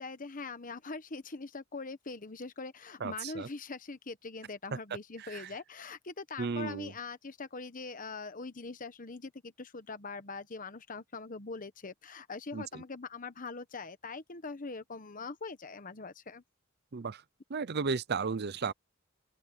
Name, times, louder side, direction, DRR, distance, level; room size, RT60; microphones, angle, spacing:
voice 1, 0.0-16.4, left 4 dB, 40° left, 1.2 m, -42 dB
voice 2, 3.0-3.5 5.2-5.5 6.4-6.9 12.5-12.8 16.9-17.2 17.5-18.7, right 5 dB, 55° right, 0.6 m, -34 dB
open air
head